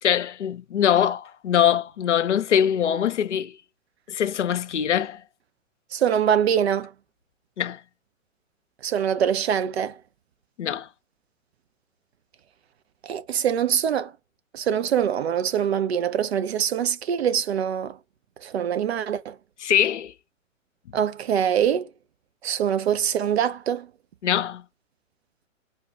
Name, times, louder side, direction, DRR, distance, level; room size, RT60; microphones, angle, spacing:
voice 1, 0.0-3.5 4.1-5.2 7.6-7.8 10.6-10.9 19.6-20.1 24.2-24.6, left 9 dB, 60° left, 0.7 m, -23 dB
voice 2, 5.9-6.9 8.8-10.0 13.0-14.1 14.5-18.0 18.4-19.4 20.9-21.9 22.4-23.9, right 9 dB, 50° right, 0.6 m, -24 dB
4.2 x 2.3 x 4.7 m
figure-of-eight pair, 115°, 40 cm